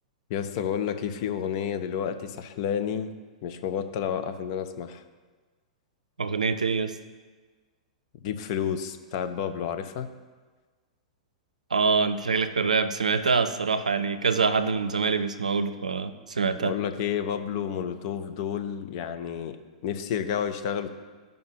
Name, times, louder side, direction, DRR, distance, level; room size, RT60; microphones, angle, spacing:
voice 1, 0.3-3.1 3.4-5.0 8.2-10.1 16.6-19.6 19.8-20.9, left 8 dB, 50° left, 9 dB, 0.7 m, -30 dB
voice 2, 6.2-7.0 11.7-16.7, right 4 dB, 90° right, 11 dB, 0.5 m, -25 dB
14.0 x 5.2 x 2.9 m, 1.4 s
hypercardioid pair, 110°, 4 cm